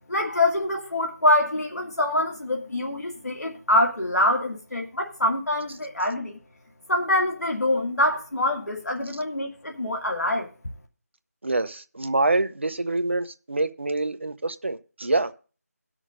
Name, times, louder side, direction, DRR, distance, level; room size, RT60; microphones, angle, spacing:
voice 1, 0.1-6.4 6.9-10.5, left 1 dB, 80° left, 2.2 m, -25 dB
voice 2, 11.4-15.3, right 2 dB, 45° right, 0.8 m, -26 dB
17.0 x 6.4 x 3.8 m
figure-of-eight pair, 175°, 9 cm